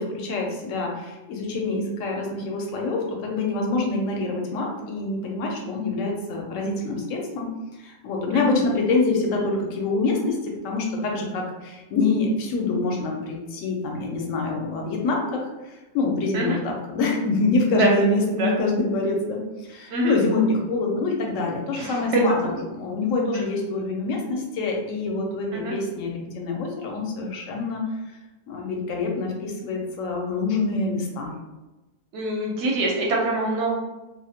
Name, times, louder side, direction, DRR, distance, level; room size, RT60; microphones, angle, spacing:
voice 1, 0.0-7.5 7.8-19.4 19.7-27.8 28.5-31.3, left 3 dB, 85° left, 0 dB, 1.0 m, -26 dB
voice 2, 21.7-22.2 23.3-23.5 25.5-25.7 32.1-33.7, right 2 dB, 70° right, -1 dB, 0.9 m, -25 dB
2.4 x 2.0 x 2.7 m, 1.1 s
omnidirectional pair, 1.3 m